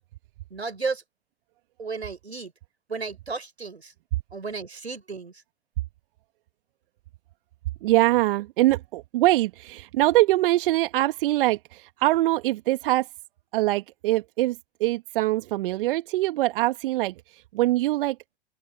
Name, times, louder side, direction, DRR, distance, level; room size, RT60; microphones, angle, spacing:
voice 1, 0.5-1.0 1.8-2.5 2.9-3.9 4.3-5.4, right 4 dB, 85° right, 4.7 m, -33 dB
voice 2, 7.8-13.1 13.5-18.2, right 17 dB, 60° right, 1.7 m, -23 dB
open air
figure-of-eight pair, 85°, 31 cm